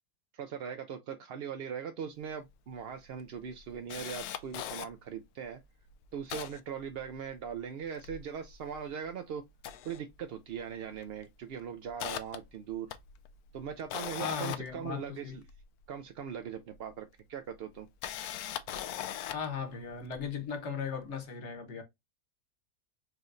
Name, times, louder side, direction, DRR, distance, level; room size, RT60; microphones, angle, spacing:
voice 1, 0.3-5.6 6.1-9.4 9.8-12.9 13.5-15.4 15.9-17.9, right 7 dB, 70° right, 0.5 m, -40 dB
Camera, 2.3-2.4 2.7-2.8 3.2-4.9 5.5-5.6 5.9-7.5 7.8-9.1 9.5-10.6 10.9-11.2 11.6-15.6 16.7-16.8 17.7-19.5 20.1-20.2, left 11 dB, 85° left, 1.1 m, -40 dB
voice 2, 14.2-15.3 19.3-21.8, left 6 dB, 55° left, 1.2 m, -37 dB
4.6 x 3.1 x 2.5 m
omnidirectional pair, 1.5 m